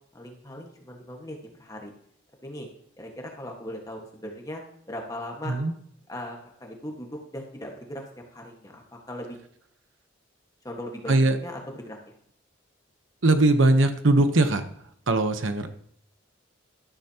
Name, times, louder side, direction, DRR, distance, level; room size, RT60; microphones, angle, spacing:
voice 1, 0.1-1.9 2.4-2.7 3.0-4.6 4.9-5.5 6.1-8.0 8.3-9.4 10.6-11.1 11.4-12.0, left 1 dB, 20° left, 0 dB, 1.6 m, -38 dB
voice 2, 11.1-11.4 13.2-14.6 15.1-15.7, right 2 dB, 85° right, 8 dB, 1.0 m, -20 dB
13.0 x 12.0 x 2.9 m, 0.65 s
head